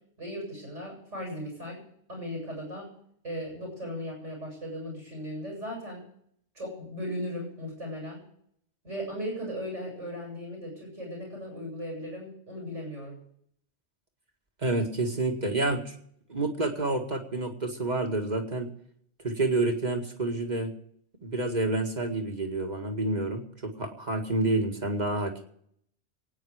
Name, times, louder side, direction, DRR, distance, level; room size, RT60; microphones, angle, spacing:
voice 1, 0.2-1.8 2.1-2.9 3.2-6.0 6.5-8.2 8.8-13.2, equal, 85° right, 0 dB, 7.9 m, -37 dB
voice 2, 14.6-16.0 16.3-18.7 19.2-20.7 21.2-25.4, right 2 dB, 35° right, 3 dB, 2.1 m, -29 dB
24.0 x 9.4 x 5.0 m, 0.68 s
omnidirectional pair, 1.2 m